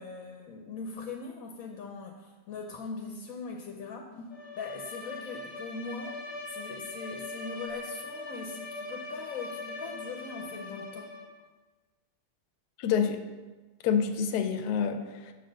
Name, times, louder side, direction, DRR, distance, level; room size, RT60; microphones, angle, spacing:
voice 1, 0.0-4.1 4.6-6.2 6.5-11.1, left 4 dB, 65° left, 2 dB, 1.0 m, -40 dB
Bowed string instrument, 4.3-11.4, left 2 dB, 35° left, 0.4 m, -41 dB
voice 2, 12.8-13.2 13.8-15.3, left 7 dB, 85° left, 7 dB, 1.1 m, -28 dB
5.7 x 4.2 x 6.3 m, 1.2 s
omnidirectional pair, 1.7 m